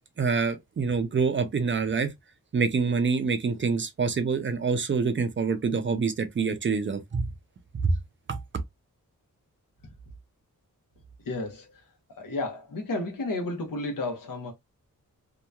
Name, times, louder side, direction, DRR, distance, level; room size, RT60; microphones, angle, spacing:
voice 1, 0.2-2.1 2.5-7.3 7.8-7.9 8.3-8.4, right 5 dB, 35° right, 0.4 m, -26 dB
voice 2, 11.2-11.8 12.1-14.5, left 2 dB, 80° left, 1.0 m, -32 dB
2.8 x 2.3 x 2.2 m
wide cardioid pair, 140°, 33 cm